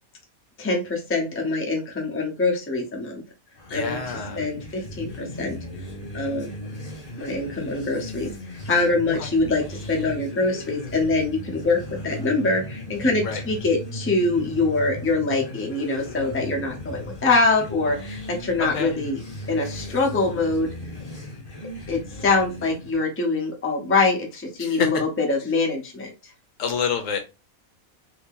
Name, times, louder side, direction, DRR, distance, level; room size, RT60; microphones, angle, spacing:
voice 1, 0.6-3.2 3.7-5.6 6.1-6.5 7.2-19.2 19.5-20.7 21.9-26.3, left 3 dB, 15° left, 0 dB, 0.6 m, -24 dB
sound 1, 3.5-23.0, left 1 dB, 30° left, 0.9 m, -37 dB
voice 2, 3.7-4.4 9.2-9.3 13.2-13.4 18.6-18.9 24.6-24.9 26.6-27.2, left 6 dB, 70° left, 6 dB, 1.0 m, -27 dB
2.7 x 2.7 x 3.7 m, 0.28 s
omnidirectional pair, 1.5 m